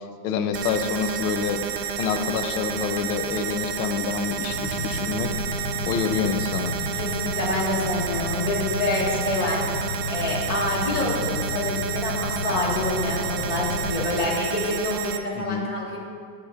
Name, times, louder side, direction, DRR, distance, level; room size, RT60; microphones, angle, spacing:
voice 1, 0.0-1.6 2.0-5.3 5.9-6.7 15.4-15.7, left 6 dB, 85° left, 7 dB, 1.4 m, -27 dB
sound 1, 0.5-15.2, right 8 dB, 85° right, 0.8 m, -30 dB
sound 2, 4.5-14.0, left 2 dB, 55° left, 1.8 m, -32 dB
voice 2, 6.9-9.6 10.1-16.0, left 2 dB, 20° left, -4 dB, 1.4 m, -27 dB
13.5 x 9.7 x 2.4 m, 2.1 s
omnidirectional pair, 2.2 m